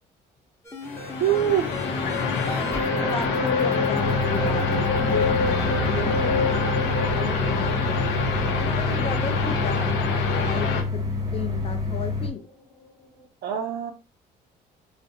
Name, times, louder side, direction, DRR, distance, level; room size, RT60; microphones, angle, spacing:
sound 1, 0.7-11.0 11.4-11.5, left 2 dB, 15° left, 0.8 m, -30 dB
sound 2, 0.8-10.8, left 4 dB, 75° left, 0.6 m, -27 dB
voice 1, 1.2-1.8 13.4-13.9, right 10 dB, 60° right, 0.5 m, -24 dB
voice 2, 2.4-8.0 8.6-11.0 11.3-12.5, left 6 dB, 30° left, 0.4 m, -34 dB
sound 3, 4.0-12.3, left 3 dB, 20° right, 0.7 m, -28 dB
2.4 x 2.0 x 2.6 m
supercardioid pair, 75°, 19 cm